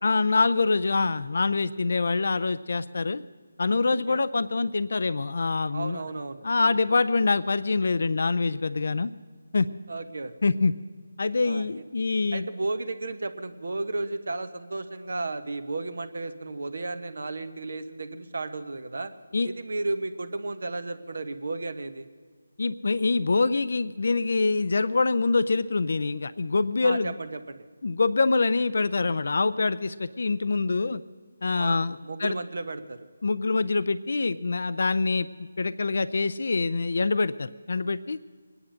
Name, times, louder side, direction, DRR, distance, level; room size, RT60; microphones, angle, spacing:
voice 1, 0.0-3.2 3.6-6.0 6.4-9.1 9.5-9.7 10.4-10.7 11.2-12.5 19.3-19.5 22.6-27.1 27.8-31.0 31.4-32.4 33.2-38.2, left 3 dB, 60° left, 14 dB, 0.5 m, -25 dB
voice 2, 3.9-4.2 5.7-6.7 9.9-10.3 11.4-11.8 12.3-19.1 19.4-22.1 26.8-27.6 31.5-33.1, right 2 dB, 70° right, 10 dB, 1.1 m, -33 dB
23.0 x 9.9 x 6.4 m, 1.5 s
figure-of-eight pair, 165°, 0 cm